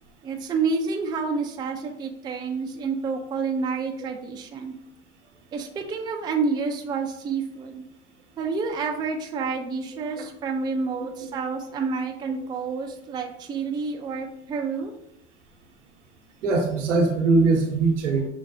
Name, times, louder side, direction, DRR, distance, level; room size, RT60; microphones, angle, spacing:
voice 1, 0.2-4.7 5.5-7.8 8.4-14.9, right 4 dB, 15° right, 3 dB, 0.3 m, -29 dB
voice 2, 16.4-18.3, right 3 dB, 85° right, 2 dB, 0.8 m, -22 dB
5.5 x 2.2 x 2.6 m, 0.77 s
hypercardioid pair, 90°, 35 cm